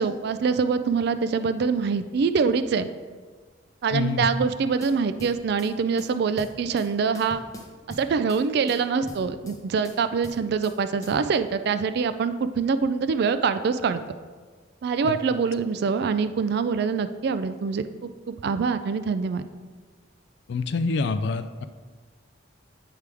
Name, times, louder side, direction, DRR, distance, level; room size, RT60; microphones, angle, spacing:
voice 1, 0.0-2.9 3.8-7.4 7.9-14.0 14.8-19.4, right 5 dB, 55° right, 11 dB, 0.3 m, -25 dB
voice 2, 3.9-4.3 15.0-15.2 20.5-21.7, left 4 dB, 60° left, 11 dB, 0.4 m, -26 dB
sound 1, 4.8-5.7 6.0-6.9 7.1-8.4 8.7-9.6 9.8-10.8 11.0-11.2, equal, 15° left, 0.7 m, -43 dB
8.2 x 4.7 x 3.4 m, 1.5 s
head